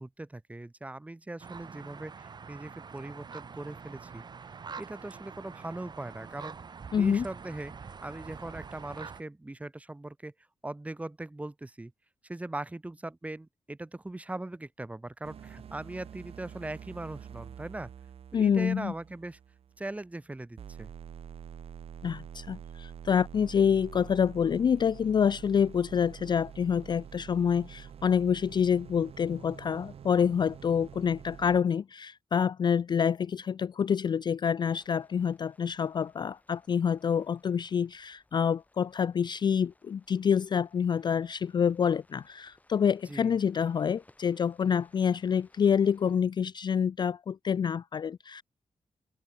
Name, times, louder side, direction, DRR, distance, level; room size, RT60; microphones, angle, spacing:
voice 1, 0.0-4.3 4.8-6.6 6.9-10.3 10.6-11.9 12.2-17.9 18.3-19.4 19.8-20.9 43.0-43.4, right 2 dB, 10° right, 3.1 m, -40 dB
sound 1, 1.4-9.2, right 5 dB, 40° right, 1.6 m, -45 dB
voice 2, 6.9-7.3 18.3-18.9 22.0-48.4, left 7 dB, 40° left, 0.4 m, -27 dB
sound 2, 15.2-20.2 20.6-31.6, right 8 dB, 60° right, 0.9 m, -47 dB
sound 3, 34.6-46.2, left 2 dB, 15° left, 7.1 m, -66 dB
open air
wide cardioid pair, 160°, 12 cm